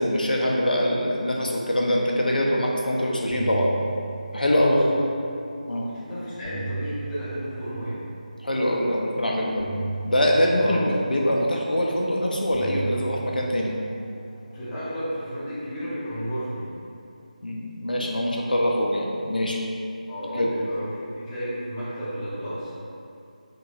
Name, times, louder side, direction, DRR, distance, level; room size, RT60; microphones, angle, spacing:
voice 1, 0.0-3.7 4.3-4.8 5.7-5.9 8.4-9.6 10.1-13.7 17.4-19.6 20.3-20.5, left 1 dB, 85° left, -2 dB, 0.5 m, -23 dB
sound 1, 3.2-5.5 6.1-8.6 9.6-12.0 12.5-15.1, right 3 dB, 50° left, 0.9 m, -37 dB
voice 2, 4.5-5.1 5.8-8.0 10.6-11.1 14.5-16.7 20.1-22.8, equal, 10° left, -12 dB, 0.5 m, -32 dB
2.9 x 2.9 x 2.5 m, 2.5 s
figure-of-eight pair, 165°, 5 cm